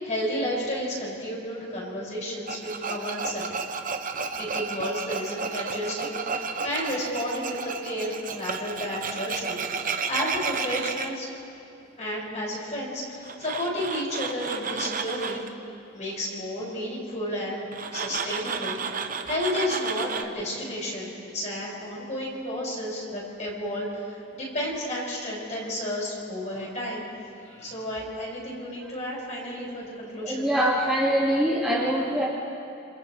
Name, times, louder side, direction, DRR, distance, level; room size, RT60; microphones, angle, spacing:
voice 1, 0.0-3.5 4.4-11.3 12.0-15.5 15.9-27.1 27.4-30.7, equal, 35° left, -5 dB, 6.5 m, -32 dB
Tools, 2.5-11.1 13.2-15.5 17.7-20.2, right 5 dB, 40° right, 0.9 m, -32 dB
voice 2, 30.2-32.3, equal, ahead, -8 dB, 2.2 m, -23 dB
28.0 x 28.0 x 3.4 m, 2.7 s
head